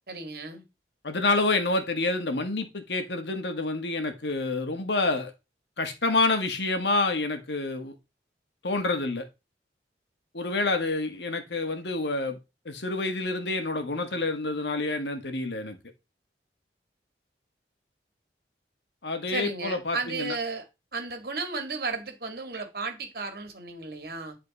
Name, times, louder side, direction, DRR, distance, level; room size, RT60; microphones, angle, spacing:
voice 1, 0.1-0.6 19.3-20.7 20.9-24.4, right 4 dB, 55° right, 2.0 m, -34 dB
voice 2, 1.0-5.3 5.8-7.9 8.6-9.3 10.3-12.4 12.6-15.8 19.0-20.3, left 2 dB, 80° left, 1.6 m, -28 dB
10.0 x 4.3 x 4.1 m
head